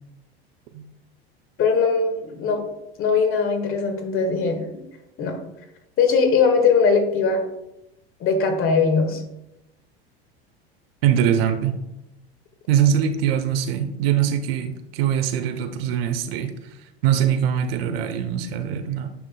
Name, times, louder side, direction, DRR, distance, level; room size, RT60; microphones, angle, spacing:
voice 1, 1.6-2.7 3.0-4.6 5.2-5.4 6.0-7.4 8.2-9.2, left 5 dB, 45° left, 4 dB, 1.7 m, -20 dB
voice 2, 11.0-11.8 12.7-16.5 17.0-19.1, right 9 dB, 70° right, 8 dB, 1.0 m, -22 dB
9.7 x 5.5 x 2.3 m, 0.91 s
hypercardioid pair, 90°, 31 cm